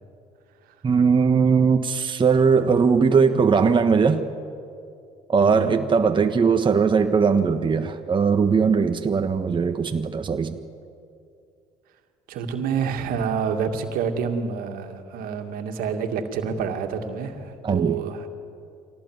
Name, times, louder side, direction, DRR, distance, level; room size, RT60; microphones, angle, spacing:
voice 1, 0.8-4.2 5.3-10.6 17.6-18.0, right 5 dB, 30° right, 6 dB, 1.4 m, -19 dB
voice 2, 5.4-5.8 12.3-18.3, right 6 dB, 70° right, 5 dB, 2.3 m, -28 dB
25.5 x 18.0 x 9.6 m, 2.5 s
hypercardioid pair, 65°, 16 cm